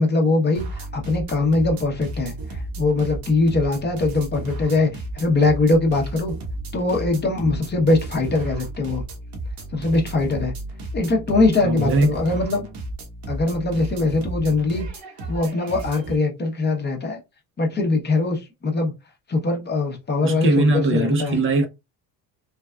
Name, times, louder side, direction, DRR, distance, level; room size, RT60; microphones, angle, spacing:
voice 1, 0.0-6.3 6.7-9.0 9.7-10.5 10.9-12.7 13.3-14.8 15.3-17.2 17.6-18.9 19.3-21.4, left 3 dB, 25° left, 0.8 m, -22 dB
sound 1, 0.5-16.2, right 2 dB, 70° right, 1.1 m, -33 dB
voice 2, 11.6-12.2 20.2-21.7, right 2 dB, 35° right, 0.6 m, -20 dB
3.3 x 2.3 x 2.3 m
cardioid pair, 110°, 38 cm